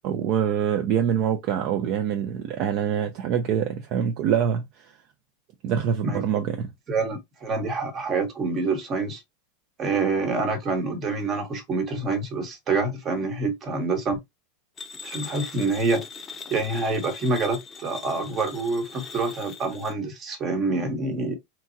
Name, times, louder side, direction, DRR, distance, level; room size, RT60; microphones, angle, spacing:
voice 1, 0.0-4.7 5.6-6.7, right 8 dB, 55° right, 0.5 m, -25 dB
voice 2, 6.9-9.2 9.8-14.2 15.0-16.0 16.5-21.4, right 3 dB, 35° right, 1.0 m, -26 dB
sound 1, 14.8-19.9, left 5 dB, 25° left, 0.5 m, -40 dB
2.9 x 2.2 x 2.5 m
hypercardioid pair, 100°, 0 cm